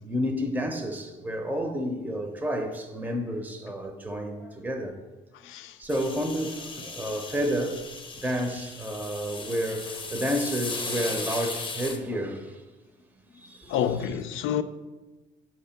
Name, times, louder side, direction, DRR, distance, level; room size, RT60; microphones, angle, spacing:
voice 1, 0.0-5.0 5.8-7.8 8.1-12.6 13.3-14.2, equal, 10° right, 0.6 m, -30 dB
voice 2, 5.4-5.8 13.7-14.6, left 9 dB, 85° left, 0.4 m, -28 dB
sound 1, 5.9-12.0, left 4 dB, 25° left, 0.7 m, -37 dB
6.5 x 2.9 x 5.6 m
cardioid pair, 90°, 20 cm